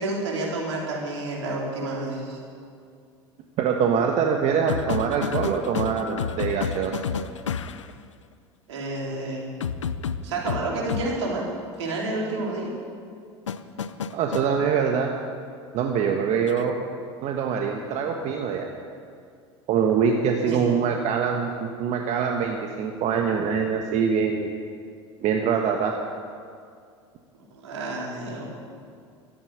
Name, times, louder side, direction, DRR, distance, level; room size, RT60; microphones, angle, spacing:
voice 1, 0.0-2.4 8.7-9.4 10.2-11.4 11.8-12.7 20.4-20.6 27.5-28.5, right 2 dB, 80° right, -3 dB, 4.3 m, -29 dB
voice 2, 3.6-7.0 14.1-15.1 15.7-16.8 17.2-18.7 19.7-24.5 25.2-25.9, right 6 dB, 50° right, 2 dB, 1.4 m, -24 dB
sound 1, 4.7-7.9 9.6-11.1 13.5-14.5 16.5-16.7, left 7 dB, 90° left, 0.6 m, -30 dB
13.5 x 10.5 x 9.4 m, 2.3 s
hypercardioid pair, 80°, 15 cm